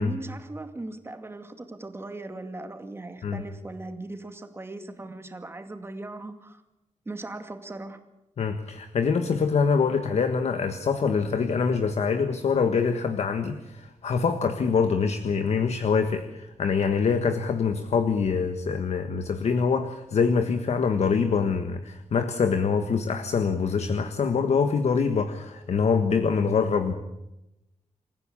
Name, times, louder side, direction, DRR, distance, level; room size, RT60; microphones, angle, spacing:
voice 1, 0.0-6.6 7.1-8.0, right 2 dB, 20° right, 7 dB, 2.3 m, -38 dB
voice 2, 8.4-26.9, left 5 dB, 60° left, 8 dB, 1.5 m, -25 dB
27.5 x 15.5 x 8.6 m, 0.92 s
wide cardioid pair, 155°, 12 cm